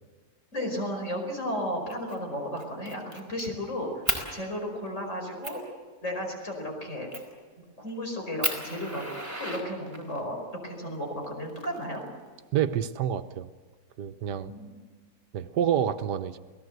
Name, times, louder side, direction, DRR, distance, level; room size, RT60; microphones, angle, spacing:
voice 1, 0.5-4.0 4.3-5.6 6.0-7.1 7.6-9.1 9.4-12.0 14.4-14.8, equal, 45° left, 2 dB, 5.5 m, -34 dB
Fire, 1.9-2.2 2.6-3.5 4.1-4.3 4.9-5.0 5.4-5.6 7.1-7.4 7.9-8.0 8.4-10.2 11.2-12.2, right 1 dB, 10° right, 4.3 m, -33 dB
voice 2, 12.5-13.5 14.0-14.5 15.3-16.4, right 9 dB, 90° right, 10 dB, 1.5 m, -28 dB
28.5 x 17.5 x 8.0 m, 1.5 s
omnidirectional pair, 1.7 m